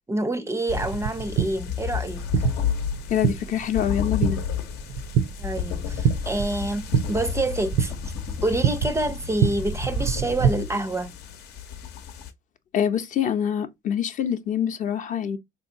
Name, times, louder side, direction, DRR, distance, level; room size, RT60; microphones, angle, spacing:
voice 1, 0.1-2.5 5.4-8.1 8.4-11.1, right 2 dB, 15° right, 0.4 m, -27 dB
sound 1, 0.7-12.3, left 8 dB, 85° left, 0.7 m, -32 dB
sound 2, 0.7-10.5, right 8 dB, 75° right, 0.5 m, -27 dB
voice 2, 3.1-4.4 12.7-15.4, left 9 dB, 50° left, 0.5 m, -25 dB
3.7 x 2.8 x 2.5 m
cardioid pair, 110°, 17 cm